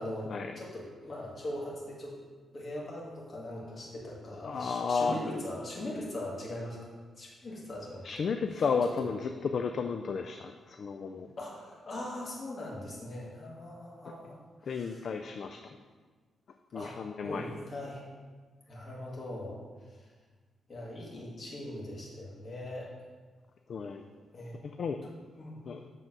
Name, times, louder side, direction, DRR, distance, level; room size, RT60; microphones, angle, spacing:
voice 1, 0.6-2.2 2.5-6.9 7.2-8.1 9.0-9.1 11.4-15.0 16.7-16.9 17.2-18.1 18.7-19.6 19.9-20.1 20.7-22.9 24.3-24.6 25.4-25.6, left 1 dB, 30° left, -4 dB, 1.9 m, -40 dB
voice 2, 4.4-5.2 8.0-11.3 14.6-15.8 16.7-17.5 23.7-24.0 24.6-25.0 25.7-25.9, left 5 dB, 50° left, 5 dB, 0.3 m, -33 dB
7.7 x 3.8 x 6.0 m, 1.4 s
wide cardioid pair, 155°, 0 cm